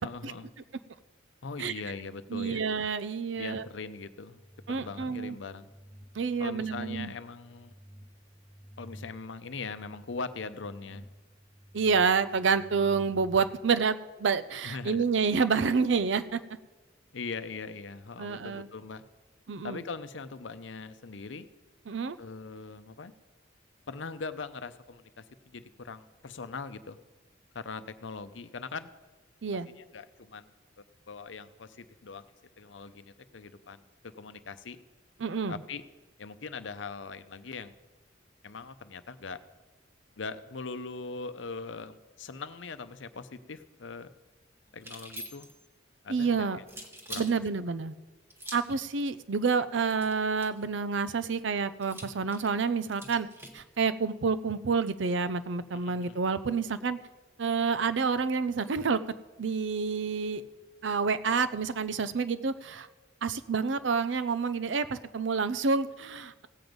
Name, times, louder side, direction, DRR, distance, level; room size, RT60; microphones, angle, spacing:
voice 1, 0.0-0.5 1.4-2.6 3.4-4.4 4.7-5.7 6.4-7.7 8.8-11.0 14.6-15.1 17.1-19.0 19.6-21.5 22.2-23.1 23.9-27.0 27.5-28.9 29.7-30.5 30.8-32.2 32.6-34.8 35.5-35.8 36.2-37.7 38.4-39.4 40.2-44.1 44.7-45.5 46.0-46.6 47.1-47.3 55.7-56.2, left 4 dB, 75° left, 12 dB, 0.7 m, -41 dB
voice 2, 2.3-3.7 4.7-5.4 6.1-7.1 11.7-16.4 18.2-18.7 19.5-19.8 21.9-22.2 29.4-29.7 35.2-35.6 46.1-46.6 47.1-47.9 48.5-53.3 53.5-57.0 57.4-59.0 59.4-60.4 60.8-62.9 63.2-66.5, right 5 dB, 75° right, 13 dB, 0.6 m, -28 dB
sound 1, 4.3-13.5, equal, 45° right, 1.4 m, -51 dB
sound 2, 44.8-45.7 46.7-47.3 48.3-48.8 49.9-50.6 51.8-53.6, right 1 dB, 15° right, 1.0 m, -44 dB
16.0 x 7.9 x 5.2 m, 1.2 s
head